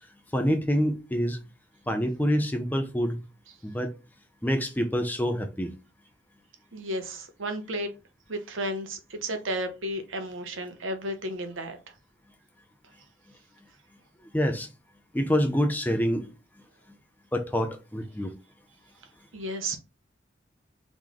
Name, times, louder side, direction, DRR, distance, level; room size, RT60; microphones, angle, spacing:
voice 1, 0.3-1.4 1.9-3.2 3.6-3.9 4.4-5.7 14.3-14.7 15.1-16.3 17.3-18.3, equal, 10° left, 0.5 m, -26 dB
voice 2, 6.7-7.9 8.3-11.8 19.3-19.8, right 1 dB, 90° right, 0.9 m, -33 dB
3.7 x 3.1 x 3.7 m
head